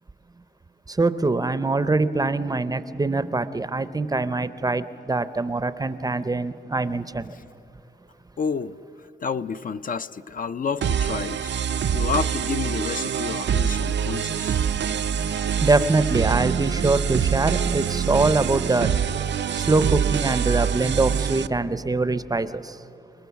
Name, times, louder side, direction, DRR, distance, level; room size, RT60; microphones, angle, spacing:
voice 1, 0.9-7.3 15.6-22.8, right 3 dB, 20° right, 0.5 m, -24 dB
voice 2, 8.4-8.8 9.2-14.6, left 5 dB, 50° left, 0.4 m, -30 dB
sound 1, 10.8-21.5, right 8 dB, 75° right, 0.5 m, -25 dB
29.0 x 20.0 x 7.0 m
wide cardioid pair, 175°, 19 cm